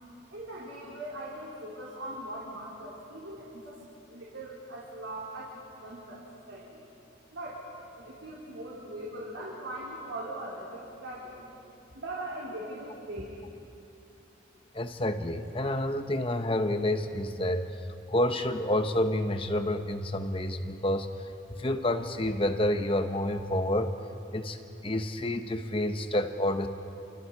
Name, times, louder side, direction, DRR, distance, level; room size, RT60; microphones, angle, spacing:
voice 1, 0.3-3.8 4.1-6.8 7.3-7.6 8.0-11.5 11.9-13.3, right 1 dB, 80° right, -6 dB, 4.0 m, -40 dB
voice 2, 14.7-17.7 18.1-21.1 21.6-23.9 24.3-24.6 24.8-26.7, left 1 dB, 30° left, 7 dB, 1.2 m, -29 dB
29.0 x 28.5 x 4.8 m, 2.9 s
head